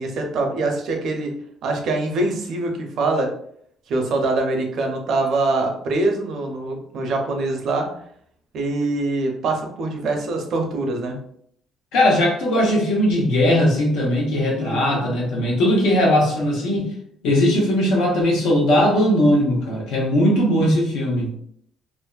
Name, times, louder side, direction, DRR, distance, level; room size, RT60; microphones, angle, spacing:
voice 1, 0.0-1.3 1.6-3.3 3.9-7.9 8.5-11.2 14.6-15.0, right 2 dB, 65° right, 2 dB, 0.6 m, -24 dB
voice 2, 11.9-16.9 17.2-21.3, left 1 dB, 80° left, -1 dB, 0.8 m, -19 dB
2.5 x 2.1 x 2.3 m, 0.67 s
cardioid pair, 100°, 0 cm